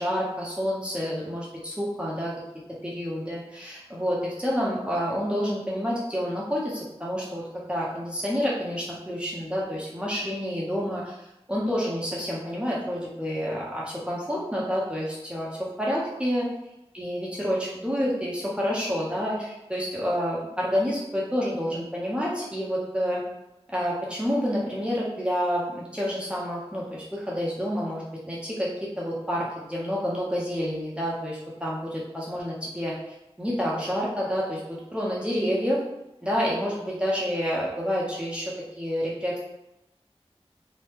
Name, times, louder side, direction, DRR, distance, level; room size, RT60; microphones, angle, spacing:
voice 1, 0.0-2.3 2.8-11.2 11.5-16.4 16.9-23.2 23.7-32.9 33.4-35.8 36.2-39.4, equal, 10° right, -5 dB, 0.7 m, -29 dB
2.9 x 2.2 x 3.4 m, 0.91 s
wide cardioid pair, 50°, 11 cm